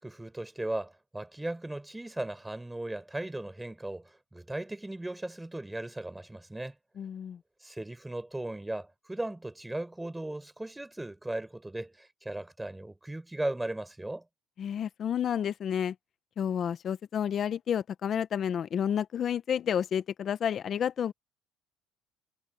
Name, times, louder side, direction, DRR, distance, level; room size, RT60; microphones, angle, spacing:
voice 1, 0.0-6.8 7.6-14.2, right 1 dB, 10° right, 4.2 m, -37 dB
voice 2, 7.0-7.4 14.6-15.9 16.4-21.1, left 8 dB, 45° left, 0.9 m, -30 dB
cardioid pair, 110°, 0 cm